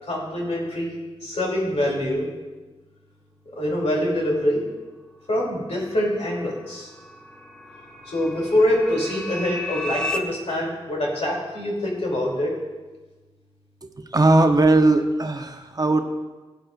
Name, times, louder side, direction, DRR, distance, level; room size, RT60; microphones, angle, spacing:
voice 1, 0.0-2.3 3.6-4.6 5.3-6.9 8.1-12.6, left 1 dB, 85° left, -3 dB, 2.9 m, -24 dB
sound 1, 5.9-10.2, left 1 dB, 10° left, 0.7 m, -34 dB
voice 2, 13.8-16.0, right 2 dB, 35° right, 6 dB, 0.7 m, -19 dB
17.0 x 9.1 x 2.5 m, 1.2 s
wide cardioid pair, 95°, 11 cm